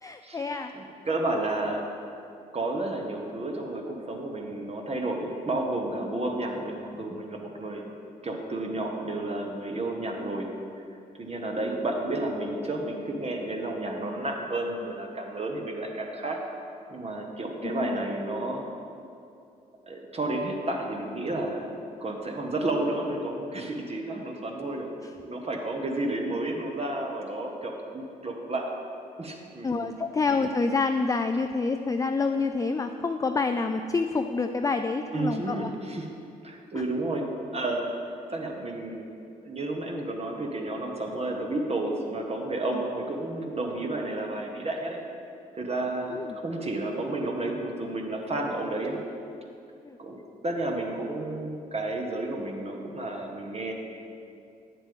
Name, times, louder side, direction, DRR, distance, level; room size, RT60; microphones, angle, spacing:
voice 1, 0.0-0.7 6.1-6.2 17.6-18.1 29.6-35.7 36.7-36.8 46.1-46.4 49.8-50.0, left 4 dB, 20° left, 7 dB, 0.4 m, -28 dB
voice 2, 0.7-1.8 2.5-7.9 8.2-10.5 11.2-16.4 16.9-18.6 19.9-21.7 22.0-24.9 25.1-28.7 29.2-30.0 30.3-30.5 35.1-36.1 36.4-37.2 37.5-39.0 39.4-45.0 45.5-49.0 50.0-53.7, right 2 dB, 35° right, 1 dB, 1.1 m, -31 dB
8.6 x 7.2 x 3.7 m, 2.6 s
hypercardioid pair, 45°, 18 cm